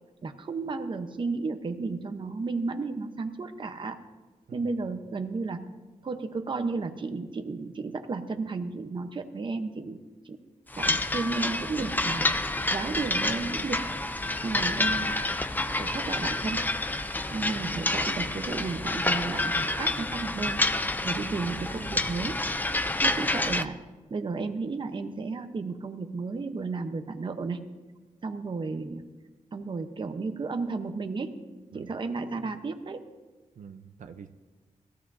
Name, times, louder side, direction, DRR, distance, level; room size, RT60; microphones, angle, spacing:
voice 1, 0.2-4.0 4.5-5.7 6.0-10.0 10.2-10.4 10.8-13.9 14.4-15.2 15.8-16.7 17.3-20.6 21.0-22.5 23.0-23.8 24.1-27.6 28.2-29.1 29.5-31.4 31.7-33.1, right 4 dB, 40° right, 6 dB, 0.9 m, -33 dB
sound 1, 10.7-23.6, left 2 dB, 15° left, 0.5 m, -28 dB
voice 2, 33.6-34.3, right 7 dB, 80° right, 7 dB, 0.7 m, -47 dB
21.0 x 15.0 x 2.7 m, 1.2 s
wide cardioid pair, 145°, 13 cm